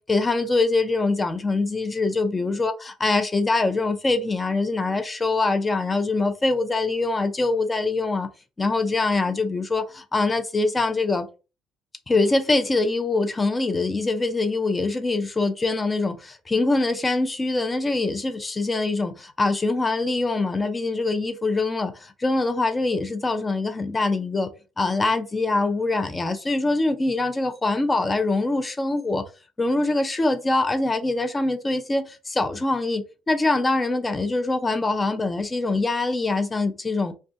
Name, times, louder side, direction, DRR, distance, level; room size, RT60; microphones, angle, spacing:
voice 1, 0.1-8.3 8.6-11.3 12.1-24.5 24.8-29.2 29.6-37.1, left 3 dB, 25° left, 0.5 m, -24 dB
2.3 x 2.2 x 2.6 m
supercardioid pair, 85°, 0 cm